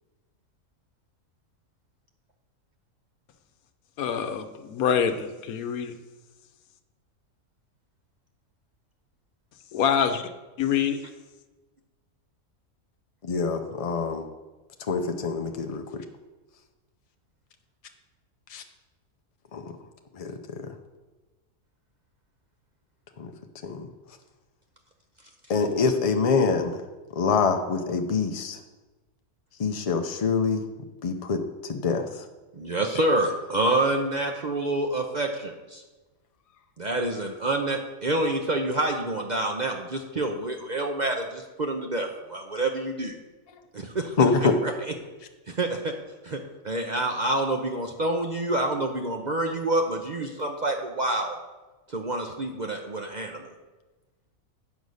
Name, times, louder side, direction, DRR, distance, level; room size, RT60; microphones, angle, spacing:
voice 1, 4.0-5.9 9.7-10.3 10.6-11.0, left 7 dB, 80° left, 8 dB, 1.2 m, -25 dB
voice 2, 13.2-14.2 14.9-16.0 18.5-18.6 19.5-19.7 20.1-20.7 23.2-23.3 23.6-23.9 25.5-26.8 27.2-28.6 29.6-30.7 31.0-32.3 44.2-44.6, left 5 dB, 60° left, 5 dB, 0.3 m, -25 dB
voice 3, 32.6-35.8 36.8-43.1 43.7-44.2 44.4-44.7 45.5-45.9 46.2-51.4 51.9-53.5, right 2 dB, 45° right, 3 dB, 0.6 m, -27 dB
8.3 x 5.3 x 6.4 m, 1.2 s
omnidirectional pair, 1.5 m